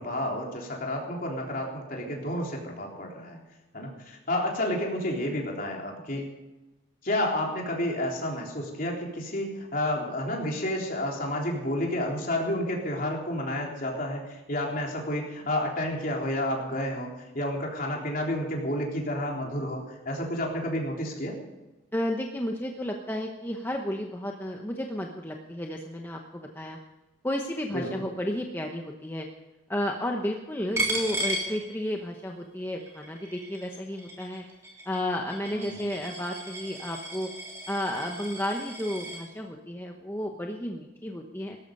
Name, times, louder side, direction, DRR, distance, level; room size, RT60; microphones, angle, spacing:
voice 1, 0.0-3.4 3.7-6.2 7.0-21.4 27.7-28.0 35.5-35.9, left 1 dB, 45° left, -1 dB, 3.8 m, -30 dB
voice 2, 21.9-26.8 27.2-29.3 29.7-34.4 34.8-37.3 37.7-41.6, left 1 dB, 10° left, 2 dB, 0.9 m, -32 dB
Coin (dropping), 30.8-32.2 32.6-39.2, right 1 dB, 15° right, 3.1 m, -35 dB
18.5 x 13.5 x 5.4 m, 1.1 s
head